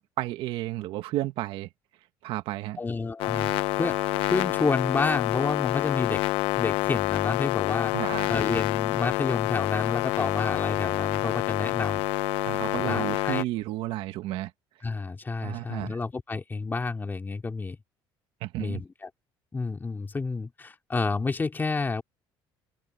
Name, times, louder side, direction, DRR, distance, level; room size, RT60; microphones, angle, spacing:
voice 1, 0.0-1.7 2.2-2.8 7.9-8.3 12.5-14.5 15.4-16.0 18.4-18.8, right 16 dB, 75° right, 1.8 m, -32 dB
voice 2, 2.8-4.0 4.3-6.2 6.6-7.9 8.3-12.0 12.8-13.4 14.8-17.8 18.6-19.1 19.5-22.0, left 4 dB, 20° left, 3.1 m, -29 dB
sound 1, 3.2-13.4, left 18 dB, 80° left, 0.9 m, -27 dB
open air
cardioid pair, 105°, 9 cm